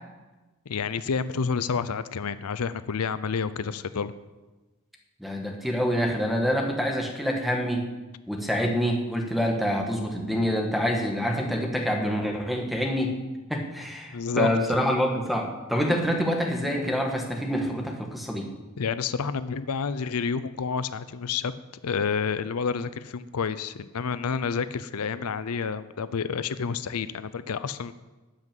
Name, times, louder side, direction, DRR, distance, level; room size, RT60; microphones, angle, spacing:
voice 1, 0.7-4.1 14.1-14.5 18.8-21.5 21.8-27.9, left 5 dB, 85° left, 14 dB, 0.6 m, -29 dB
voice 2, 5.2-7.9 8.3-13.2 13.5-18.5, equal, ahead, 2 dB, 1.6 m, -26 dB
13.0 x 6.1 x 9.0 m, 1.2 s
head